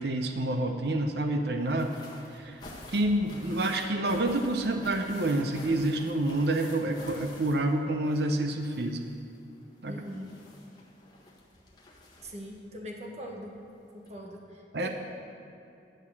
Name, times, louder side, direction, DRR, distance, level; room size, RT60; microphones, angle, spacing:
voice 1, 0.0-1.9 2.3-2.6 2.9-9.0 9.8-10.0 14.7-14.9, right 1 dB, 65° right, 5 dB, 0.7 m, -28 dB
sound 1, 1.6-8.3 8.6-12.6 13.6-13.7 14.1-14.2, left 2 dB, 25° left, 1.5 m, -49 dB
voice 2, 9.9-10.3 12.2-13.5 13.9-14.9, equal, 40° right, 0 dB, 1.3 m, -42 dB
11.0 x 6.4 x 7.2 m, 2.7 s
head